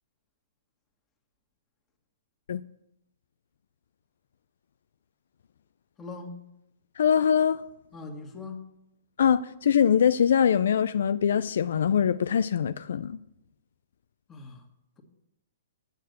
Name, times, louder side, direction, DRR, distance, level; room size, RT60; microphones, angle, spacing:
voice 1, 6.0-6.4 7.9-8.7 14.3-14.6, left 3 dB, 15° left, 1.7 m, -40 dB
voice 2, 7.0-7.6 9.2-13.2, left 8 dB, 70° left, 0.3 m, -23 dB
8.1 x 6.5 x 8.0 m
hypercardioid pair, 130°, 0 cm